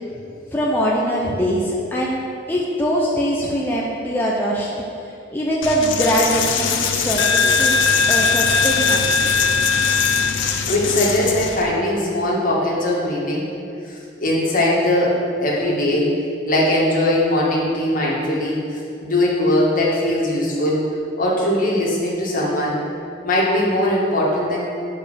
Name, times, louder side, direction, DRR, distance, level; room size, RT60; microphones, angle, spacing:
voice 1, 0.5-4.7 5.3-9.3, equal, 10° left, -5 dB, 0.8 m, -22 dB
Coin (dropping), 5.6-11.6, left 5 dB, 85° left, 0.8 m, -19 dB
voice 2, 10.7-13.5 13.9-16.1 16.5-20.8 21.2-22.8 23.2-24.6, left 1 dB, 45° left, -5 dB, 2.1 m, -20 dB
8.7 x 5.3 x 6.4 m, 2.6 s
head